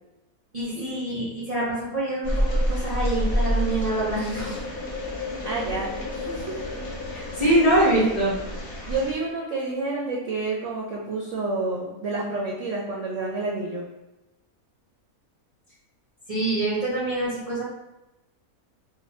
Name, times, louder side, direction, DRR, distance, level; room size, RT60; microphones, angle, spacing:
voice 1, 0.5-4.6 7.1-8.3 16.3-17.6, right 1 dB, 50° right, -9 dB, 0.4 m, -24 dB
sound 1, 2.1-9.7, left 3 dB, 85° left, 1.1 m, -38 dB
sound 2, 2.2-9.1, equal, 60° left, 0.3 m, -29 dB
voice 2, 5.5-6.6 8.9-13.9, right 3 dB, 65° right, -3 dB, 0.8 m, -29 dB
2.5 x 2.2 x 4.0 m, 0.97 s
omnidirectional pair, 1.6 m